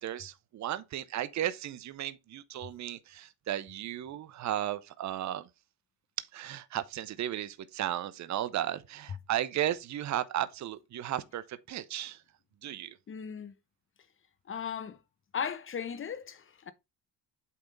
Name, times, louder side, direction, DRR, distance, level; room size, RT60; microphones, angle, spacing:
voice 1, 0.0-5.5 6.3-12.2 12.6-13.0, right 12 dB, 40° right, 0.7 m, -35 dB
voice 2, 13.1-13.5 14.5-15.0 15.3-16.7, left 7 dB, 30° left, 0.8 m, -37 dB
8.5 x 3.5 x 3.9 m
cardioid pair, 100°, 42 cm